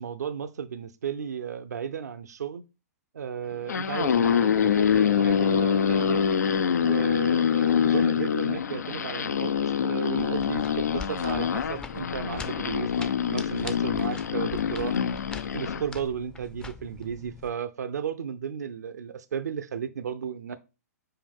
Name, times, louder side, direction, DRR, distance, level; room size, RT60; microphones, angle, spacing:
voice 1, 0.0-2.6 3.1-6.2 6.7-15.0 15.5-20.6, right 7 dB, 80° right, 0.7 m, -34 dB
sound 1, 3.5-15.9, left 7 dB, 85° left, 0.6 m, -25 dB
sound 2, 10.2-17.5, left 4 dB, 10° left, 0.5 m, -43 dB
5.7 x 4.7 x 5.2 m
hypercardioid pair, 135°, 9 cm